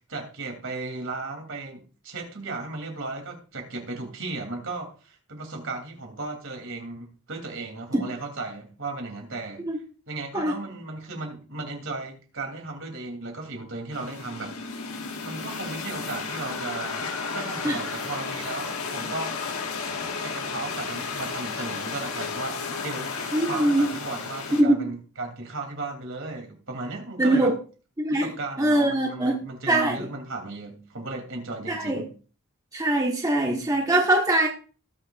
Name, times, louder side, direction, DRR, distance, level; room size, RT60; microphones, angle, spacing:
voice 1, 0.1-9.6 10.1-14.5 15.2-17.0 17.3-19.4 20.2-27.5 28.1-32.1, right 3 dB, 60° right, 2 dB, 3.0 m, -35 dB
sound 1, 13.9-24.6, left 4 dB, 80° left, 1.6 m, -33 dB
voice 2, 23.3-23.9 24.5-24.8 27.2-27.6 28.0-28.3 28.6-29.3 29.7-30.1 31.7-32.0 32.7-34.5, right 1 dB, 15° right, -1 dB, 1.3 m, -22 dB
19.0 x 6.5 x 2.5 m, 0.37 s
head